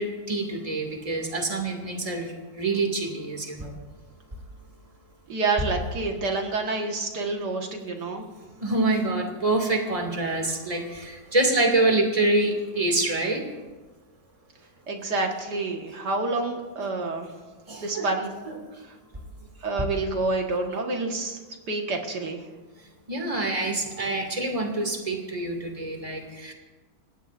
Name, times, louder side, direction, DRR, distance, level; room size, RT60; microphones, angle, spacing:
voice 1, 0.0-3.8 8.6-13.4 17.7-18.1 18.5-18.6 23.1-26.5, right 2 dB, 20° right, 1 dB, 2.3 m, -26 dB
voice 2, 5.3-8.3 14.9-17.3 17.8-18.3 19.6-21.4 21.7-22.4, right 3 dB, 75° right, 2 dB, 2.1 m, -28 dB
28.5 x 16.0 x 2.6 m, 1.2 s
omnidirectional pair, 1.8 m